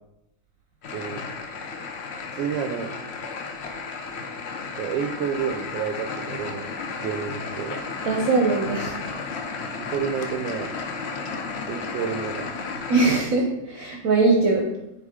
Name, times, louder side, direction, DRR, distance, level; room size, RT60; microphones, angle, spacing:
sound 1, 0.8-13.2, left 4 dB, 75° left, 0.5 m, -33 dB
voice 1, 0.9-1.2 2.4-2.9 4.8-6.7 7.0-7.8 9.8-10.7 11.7-12.6, right 7 dB, 90° right, 5 dB, 1.3 m, -29 dB
voice 2, 8.0-8.9 12.9-14.7, right 3 dB, 60° right, 0 dB, 1.0 m, -21 dB
7.2 x 4.2 x 3.6 m, 0.90 s
omnidirectional pair, 2.0 m